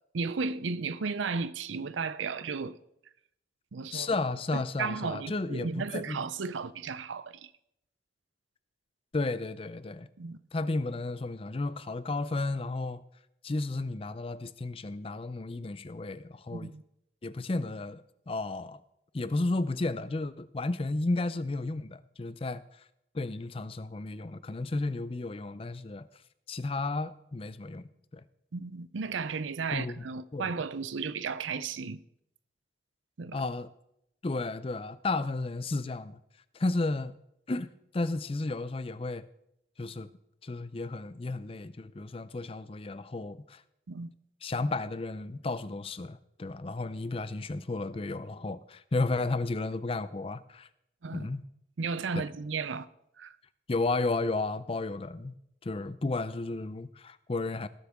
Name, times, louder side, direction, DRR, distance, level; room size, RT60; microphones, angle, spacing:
voice 1, 0.1-2.8 3.7-4.2 4.5-7.5 10.2-10.4 16.5-16.8 28.5-32.0 33.2-33.4 43.9-44.1 51.0-51.3 51.8-52.9 53.2-53.3, right 5 dB, 90° right, 0.6 m, -34 dB
voice 2, 3.9-6.2 9.1-10.1 10.5-13.0 13.4-16.7 17.2-18.8 19.1-22.6 23.1-26.1 26.5-27.8 28.1-28.2 29.7-30.1 30.3-30.5 33.3-33.7 34.2-36.2 36.5-37.1 37.5-39.3 39.8-40.1 40.4-43.6 44.4-50.7 51.1-51.4 52.2-52.3 53.7-55.3 55.6-57.7, left 2 dB, 30° left, 0.4 m, -33 dB
18.5 x 7.9 x 3.6 m
head